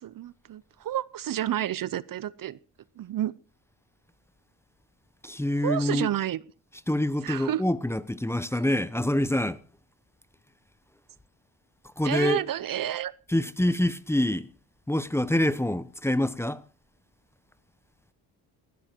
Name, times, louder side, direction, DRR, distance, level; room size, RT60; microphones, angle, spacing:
voice 1, 0.0-2.6 3.0-3.3 5.6-6.4 7.2-7.6 12.0-13.1, right 12 dB, 50° right, 0.8 m, -30 dB
voice 2, 5.2-6.1 6.9-9.6 12.0-12.4 13.3-14.5 14.9-16.6, left 1 dB, 5° left, 0.9 m, -26 dB
19.0 x 12.5 x 4.5 m
cardioid pair, 85°, 42 cm